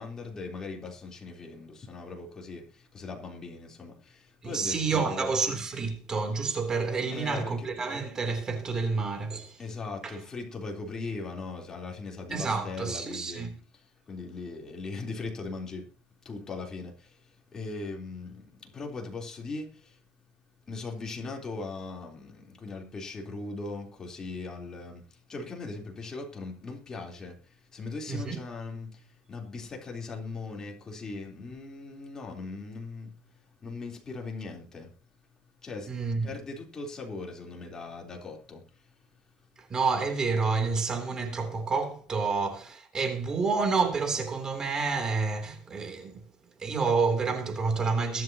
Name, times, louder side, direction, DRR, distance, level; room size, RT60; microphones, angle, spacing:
voice 1, 0.0-5.3 6.9-7.7 9.6-13.5 13.7-15.9 16.2-20.0 20.7-33.2 33.6-34.9 35.6-35.9 36.2-39.1, left 3 dB, 25° left, 3.6 m, -39 dB
voice 2, 4.4-9.6 10.0-10.2 12.3-13.5 28.1-28.4 35.9-36.3 39.6-46.2 46.6-48.2, right 4 dB, 25° right, 3.2 m, -29 dB
22.5 x 7.9 x 2.9 m
cardioid pair, 125°, 3 cm